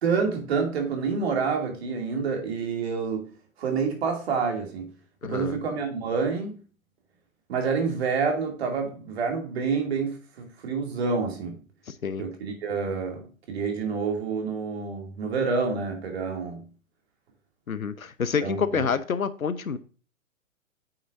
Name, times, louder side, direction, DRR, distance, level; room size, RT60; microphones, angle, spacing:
voice 1, 0.0-3.3 3.6-4.9 5.2-6.6 7.5-11.6 12.2-16.6 18.4-18.8, right 5 dB, 50° right, 2.6 m, -28 dB
voice 2, 5.2-5.6 11.9-12.2 17.7-19.8, left 6 dB, 80° left, 0.9 m, -28 dB
8.7 x 6.3 x 2.6 m
figure-of-eight pair, 125°, 41 cm